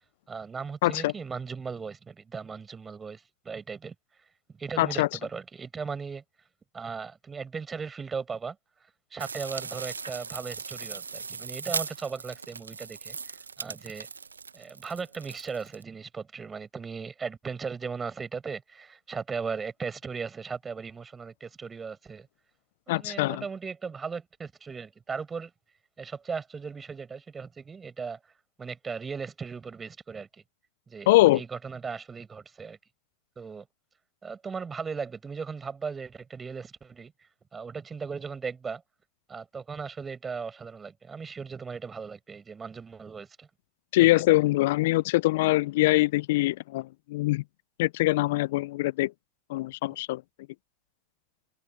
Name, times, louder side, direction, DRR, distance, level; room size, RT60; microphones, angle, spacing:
voice 1, 0.3-3.9 4.5-6.2 6.7-8.6 9.1-14.1 14.5-22.3 22.9-25.5 26.0-28.3 28.6-30.3 30.9-32.8 33.4-33.7 34.2-37.1 37.5-38.8 39.3-43.5 44.0-44.1, right 5 dB, 20° right, 6.1 m, -37 dB
voice 2, 0.8-1.1 4.8-5.1 22.9-23.4 31.1-31.4 43.9-47.4 47.8-49.1 49.5-50.2, left 19 dB, 60° left, 0.9 m, -23 dB
sound 1, 9.2-15.8, right 5 dB, 85° right, 1.3 m, -38 dB
open air
figure-of-eight pair, 90°, 0 cm